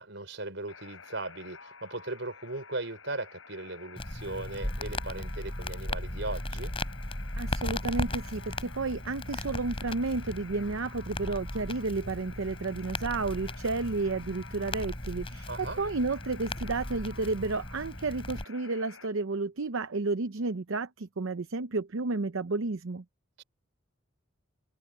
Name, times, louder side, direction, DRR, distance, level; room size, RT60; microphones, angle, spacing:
voice 1, 0.0-6.7 15.5-15.8 23.4-23.5, right 2 dB, 65° right, 4.8 m, -38 dB
Alarm, 0.7-19.1, left 5 dB, 85° left, 4.9 m, -51 dB
Crackle, 4.0-18.4, left 1 dB, 25° left, 3.6 m, -37 dB
voice 2, 7.4-23.0, right 3 dB, 85° right, 0.7 m, -32 dB
head